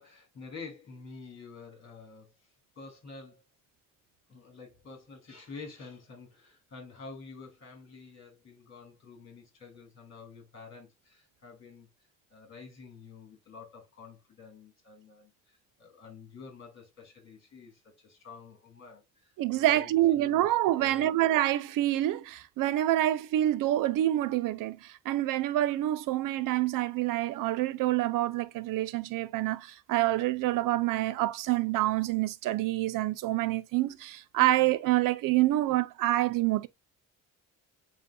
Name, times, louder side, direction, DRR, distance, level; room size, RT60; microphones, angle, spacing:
voice 1, 0.0-2.5 2.8-3.4 4.3-20.5 20.8-21.2, left 4 dB, 40° left, 2.2 m, -49 dB
voice 2, 19.4-36.7, right 14 dB, 75° right, 0.6 m, -27 dB
7.5 x 2.7 x 2.2 m
cardioid pair, 95°, 33 cm